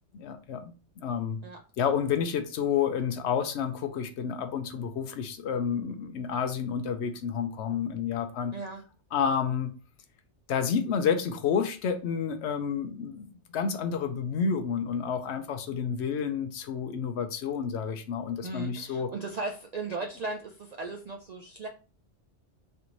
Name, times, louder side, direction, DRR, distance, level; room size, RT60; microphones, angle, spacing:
voice 1, 0.1-1.4 1.8-8.5 9.1-9.7 10.5-13.3 13.5-19.1, left 7 dB, 75° left, 8 dB, 0.9 m, -30 dB
voice 2, 18.4-21.7, right 3 dB, 60° right, 2 dB, 0.4 m, -37 dB
3.3 x 3.0 x 3.9 m, 0.35 s
omnidirectional pair, 1.2 m